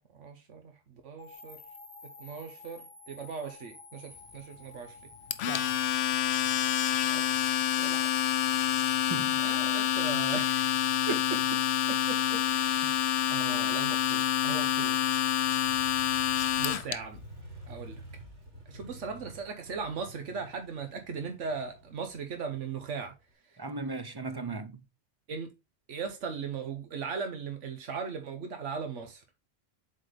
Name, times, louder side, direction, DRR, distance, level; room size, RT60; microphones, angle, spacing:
voice 1, 0.0-1.6 2.2-5.0 7.0-7.3 7.8-8.1 8.8-8.9 9.4-10.7 11.1-11.4 11.9-15.0 16.6-17.2 17.7-18.0 18.7-23.1 25.3-25.5 25.9-29.2, right 5 dB, 90° right, 1.3 m, -38 dB
sound 1, 1.2-13.4, left 2 dB, 30° left, 1.3 m, -52 dB
Domestic sounds home sounds, 5.3-16.9, left 10 dB, 70° left, 0.8 m, -27 dB
voice 2, 5.5-5.8 8.8-9.4 12.8-12.9 23.6-24.7, right 3 dB, 30° right, 0.4 m, -38 dB
Motorcycle, 15.7-23.3, right 1 dB, 70° right, 2.6 m, -50 dB
7.6 x 4.2 x 3.3 m
omnidirectional pair, 1.2 m